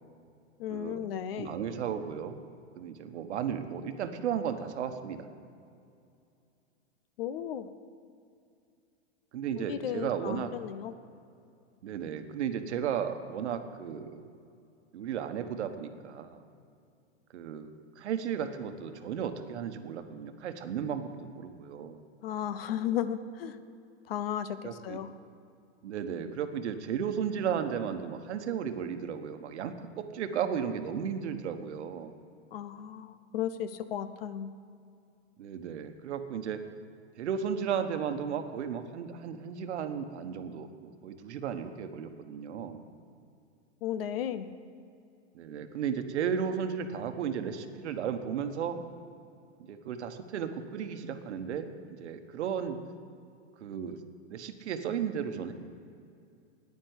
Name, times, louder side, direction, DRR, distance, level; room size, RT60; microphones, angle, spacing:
voice 1, 0.6-1.6 7.2-7.7 9.7-11.0 22.2-23.6 24.1-25.1 32.5-34.5 43.8-44.5, left 10 dB, 55° left, 13 dB, 0.7 m, -35 dB
voice 2, 1.4-2.4 2.8-5.3 9.3-10.5 11.8-14.2 14.9-16.4 17.3-17.7 18.0-22.0 24.6-25.0 25.8-32.1 35.4-36.6 37.2-42.8 45.3-48.9 49.7-52.8 53.6-54.0 54.3-55.5, right 8 dB, 70° right, 8 dB, 1.2 m, -34 dB
10.5 x 9.8 x 8.1 m, 2.5 s
supercardioid pair, 160°, 36 cm